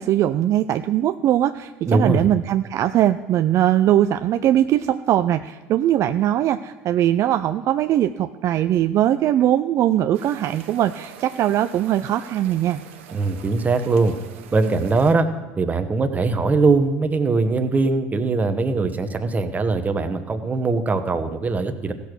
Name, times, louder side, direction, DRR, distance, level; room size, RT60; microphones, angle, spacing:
voice 1, 0.0-12.8, right 12 dB, 55° right, 10 dB, 0.4 m, -20 dB
voice 2, 1.9-2.2 13.1-14.1 14.5-15.3 15.6-21.9, right 3 dB, 25° right, 8 dB, 1.2 m, -21 dB
sound 1, 10.1-15.1, right 9 dB, 90° right, 1.0 m, -44 dB
15.0 x 6.9 x 6.2 m, 1.3 s
supercardioid pair, 85°, 6 cm